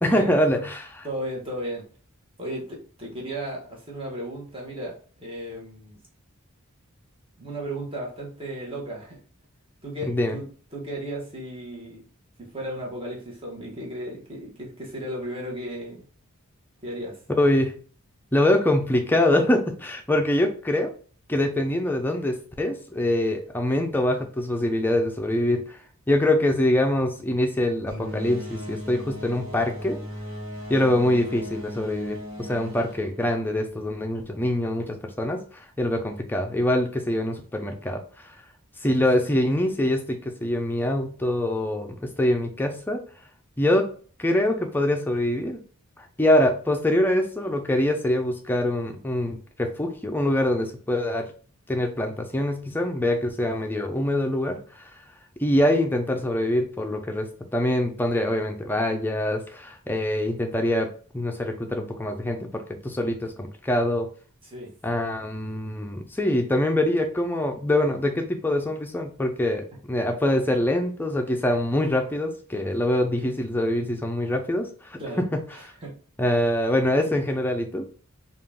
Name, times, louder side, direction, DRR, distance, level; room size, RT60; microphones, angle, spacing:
voice 1, 0.0-0.8 10.0-10.4 17.3-17.7 18.3-20.9 21.3-25.8 26.1-30.0 30.7-38.3 38.8-43.0 43.6-43.9 44.2-45.6 46.0-51.3 51.7-54.9 55.4-60.9 61.1-64.1 64.8-75.4 76.2-77.9, left 1 dB, 10° left, 4 dB, 0.5 m, -24 dB
voice 2, 1.0-1.9 2.4-6.0 7.4-9.2 9.8-12.0 12.4-16.0 16.8-17.2 38.8-39.2 64.4-64.7 75.0-75.2 75.5-76.0, right 1 dB, 25° right, -2 dB, 1.1 m, -35 dB
sound 1, 27.9-33.9, equal, 60° right, 1.3 m, -37 dB
3.7 x 2.4 x 3.4 m, 0.42 s
head